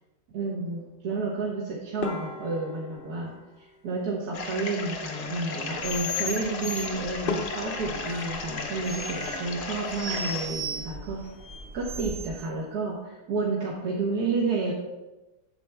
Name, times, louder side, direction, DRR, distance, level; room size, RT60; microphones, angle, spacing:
voice 1, 0.3-11.2 11.7-14.7, right 3 dB, 75° right, -4 dB, 1.7 m, -31 dB
sound 1, 2.0-4.5 6.7-6.8 7.3-10.0 10.3-11.1 11.4-11.6 11.9-12.0 12.6-12.9, left 4 dB, 45° left, 0.8 m, -38 dB
sound 2, 4.3-10.5, left 4 dB, 80° left, 1.5 m, -36 dB
sound 3, 5.8-12.4, left 1 dB, 45° right, 1.4 m, -36 dB
9.1 x 7.0 x 3.4 m, 1.1 s
omnidirectional pair, 1.7 m